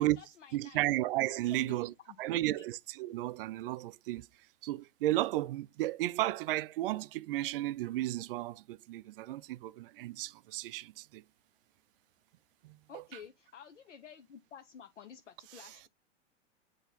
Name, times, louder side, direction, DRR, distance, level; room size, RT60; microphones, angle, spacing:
voice 1, 0.0-0.9 1.5-1.8 2.1-2.6 12.9-15.9, left 7 dB, 80° left, 0.8 m, -52 dB
voice 2, 0.5-1.9 2.2-4.3 4.6-11.2 12.6-13.0 15.6-15.7, right 16 dB, 50° right, 0.4 m, -33 dB
7.9 x 3.0 x 4.0 m
hypercardioid pair, 105°, 36 cm